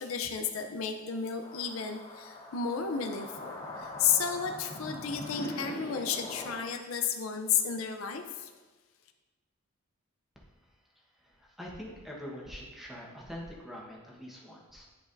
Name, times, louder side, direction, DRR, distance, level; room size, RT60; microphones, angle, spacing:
voice 1, 0.0-8.5, left 7 dB, 75° left, 5 dB, 0.5 m, -32 dB
sound 1, 1.4-6.5, left 1 dB, 40° left, 2.1 m, -42 dB
voice 2, 11.2-14.9, equal, ahead, -4 dB, 1.2 m, -44 dB
10.5 x 4.6 x 2.6 m, 1.3 s
head